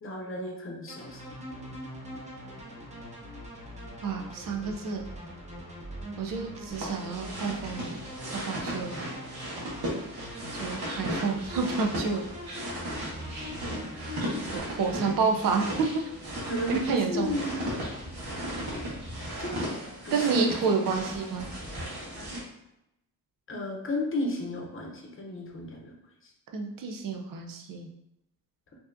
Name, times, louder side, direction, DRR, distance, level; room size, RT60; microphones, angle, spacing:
voice 1, 0.0-1.2 14.9-15.1 16.5-17.7 18.9-19.0 19.4-19.6 20.0-21.1 23.5-25.9 26.2-26.3, equal, 35° left, 0 dB, 0.7 m, -33 dB
sound 1, 0.9-14.6, equal, 20° right, 0.7 m, -42 dB
voice 2, 4.0-5.0 6.2-8.0 8.3-9.0 10.5-12.2 14.5-16.0 16.7-17.4 20.1-21.5 26.5-27.9, right 5 dB, 65° right, 2 dB, 0.6 m, -29 dB
sound 2, 6.7-22.4, equal, 85° right, 1.3 m, -36 dB
4.4 x 2.8 x 2.6 m, 0.87 s
wide cardioid pair, 145°, 36 cm